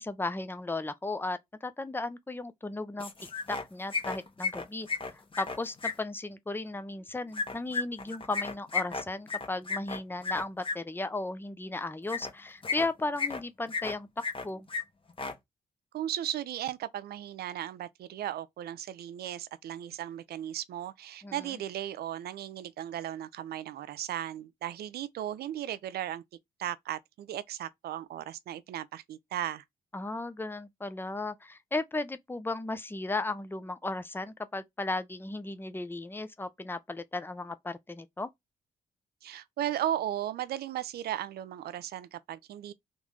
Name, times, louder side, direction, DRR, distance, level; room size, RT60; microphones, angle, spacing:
voice 1, 0.0-3.1 3.5-14.1 14.4-14.7 21.2-21.3 29.9-38.3, left 2 dB, 10° left, 0.7 m, -35 dB
sound 1, 3.0-3.6 3.9-5.9 7.3-10.7 12.1-12.3 12.6-13.4 13.7-14.4 14.7-14.8 15.1-15.3, left 4 dB, 30° left, 1.3 m, -33 dB
voice 2, 15.9-26.2 26.6-29.6 39.2-42.7, right 11 dB, 65° right, 0.5 m, -36 dB
3.7 x 3.0 x 3.6 m
hypercardioid pair, 40°, 17 cm